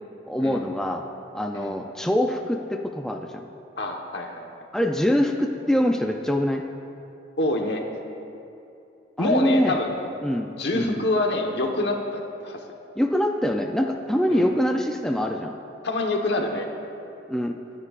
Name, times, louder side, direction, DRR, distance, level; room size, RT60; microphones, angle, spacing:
voice 1, 0.3-1.0 1.3-3.5 4.7-6.6 9.2-9.8 10.2-11.0 13.0-15.6 17.3-17.6, equal, 5° left, 2 dB, 0.4 m, -24 dB
voice 2, 3.8-4.5 7.4-7.8 9.2-10.1 10.5-12.6 14.3-14.5 15.8-16.7, left 2 dB, 65° left, 2 dB, 1.3 m, -26 dB
24.0 x 9.8 x 2.5 m, 2.7 s
head